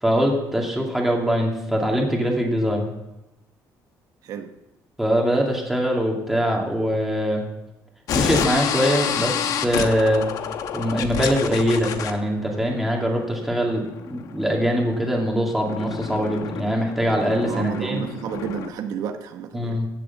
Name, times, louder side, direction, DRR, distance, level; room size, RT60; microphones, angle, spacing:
voice 1, 0.0-2.9 5.0-7.4 8.1-10.3 10.7-18.1 19.5-19.9, equal, 5° right, -1 dB, 2.5 m, -23 dB
sound 1, 8.1-18.7, left 8 dB, 60° left, 1.1 m, -29 dB
voice 2, 17.4-19.8, right 8 dB, 65° right, 6 dB, 1.0 m, -31 dB
15.5 x 6.9 x 7.2 m, 0.93 s
cardioid pair, 150°, 7 cm